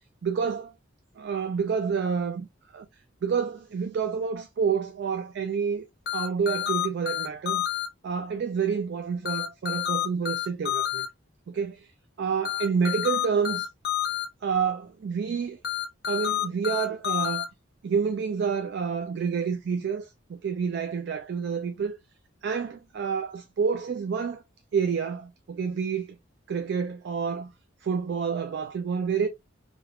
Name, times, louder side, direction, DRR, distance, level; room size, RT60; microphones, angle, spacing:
voice 1, 0.2-0.7 1.2-2.5 2.7-2.9 3.2-5.9 6.1-7.6 8.0-11.1 11.5-11.9 12.2-13.7 14.4-15.6 16.1-17.5 17.8-22.0 22.4-24.4 24.7-26.2 26.5-27.5 27.8-29.3, right 6 dB, 60° right, 0.3 m, -28 dB
sound 1, 6.1-7.9 9.3-11.1 12.5-14.3 15.6-17.5, left 12 dB, 55° left, 0.6 m, -28 dB
3.4 x 2.5 x 2.2 m
head